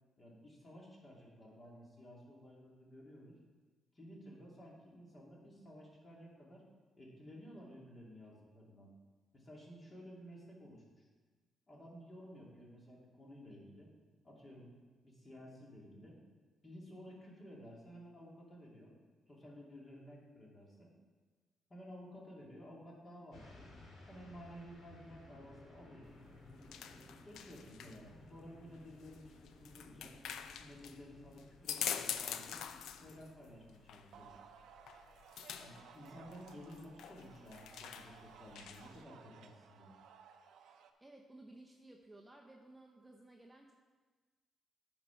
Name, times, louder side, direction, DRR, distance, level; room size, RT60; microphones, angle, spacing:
voice 1, 0.2-3.4 3.9-6.7 7.0-8.9 9.3-11.1 11.7-13.9 14.2-14.8 15.0-16.2 16.6-19.0 19.3-21.0 21.7-23.8 24.1-26.3 26.8-30.2 30.6-32.6 32.9-34.3 35.6-39.9, equal, 30° left, -3 dB, 2.4 m, -54 dB
sound 1, 23.3-33.2, left 2 dB, 65° left, 2.1 m, -59 dB
sound 2, 26.0-39.0, left 9 dB, 85° left, 0.4 m, -46 dB
sound 3, 33.2-40.9, right 7 dB, 80° right, 0.6 m, -59 dB
voice 2, 41.0-43.7, right 2 dB, 10° right, 0 dB, 0.7 m, -57 dB
10.5 x 4.4 x 5.7 m, 1.4 s
cardioid pair, 120°, 0 cm